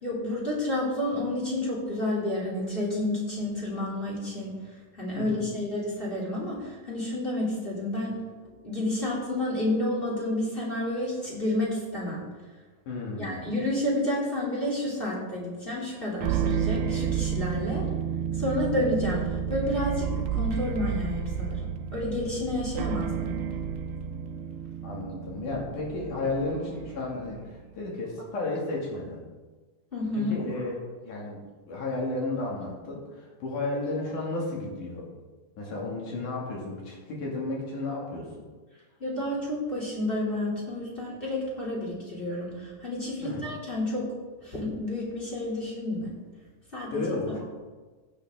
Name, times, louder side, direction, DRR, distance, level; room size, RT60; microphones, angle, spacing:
voice 1, 0.0-4.5 5.0-12.2 13.2-17.9 18.3-23.3 29.9-30.4 39.0-44.1 44.4-46.1 46.7-47.4, left 1 dB, 15° left, -5 dB, 3.1 m, -30 dB
voice 2, 5.2-5.5 12.9-13.5 24.8-29.2 30.2-30.8 31.0-31.4 31.7-35.1 35.6-38.4 43.2-43.5 46.9-47.3, left 2 dB, 65° left, -3 dB, 3.8 m, -33 dB
sound 1, 16.2-27.6, right 8 dB, 80° right, 2.1 m, -31 dB
15.5 x 8.4 x 3.7 m, 1.3 s
omnidirectional pair, 4.0 m